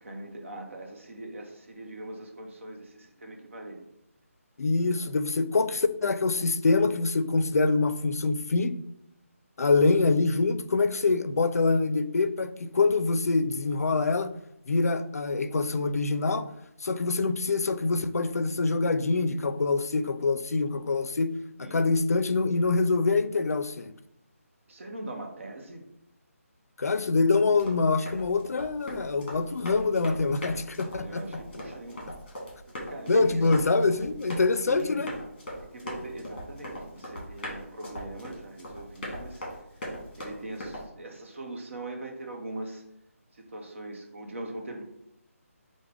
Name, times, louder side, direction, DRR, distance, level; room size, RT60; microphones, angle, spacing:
voice 1, 0.0-3.9 4.9-5.1 9.9-10.0 21.6-21.8 24.7-25.9 30.9-32.1 32.7-33.6 34.6-35.1 35.6-39.4 40.2-42.8 43.3-44.8, right 2 dB, 55° right, 0.7 m, -41 dB
voice 2, 4.6-8.8 9.6-14.3 14.7-16.5 16.8-21.3 21.6-23.9 26.8-31.2 33.1-35.1, left 3 dB, 85° left, 0.4 m, -25 dB
Run, 27.5-40.9, equal, 35° left, 1.3 m, -40 dB
4.7 x 2.1 x 3.3 m
figure-of-eight pair, 170°, 8 cm